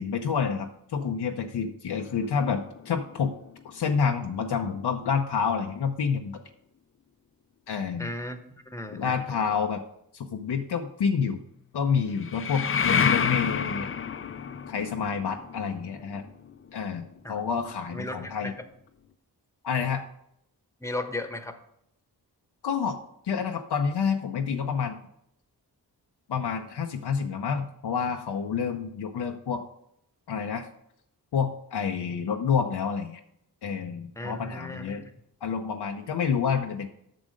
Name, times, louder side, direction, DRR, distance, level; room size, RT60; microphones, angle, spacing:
voice 1, 0.0-3.3 3.6-6.4 7.7-8.1 8.9-9.8 10.1-11.4 11.7-13.9 14.7-16.2 16.7-18.5 19.6-20.0 22.6-23.0 23.2-25.0 26.3-29.6 30.3-30.7 31.3-33.2 33.6-35.0 35.4-36.9, left 6 dB, 75° left, 4 dB, 0.7 m, -28 dB
sound 1, 2.0-4.6 12.1-17.7, left 6 dB, 35° left, 0.4 m, -30 dB
voice 2, 8.0-9.6 17.2-17.4 17.9-18.5 20.8-21.6 34.2-35.0, left 1 dB, 5° left, 8 dB, 1.0 m, -36 dB
7.7 x 6.2 x 5.0 m, 0.74 s
cardioid pair, 50°, 41 cm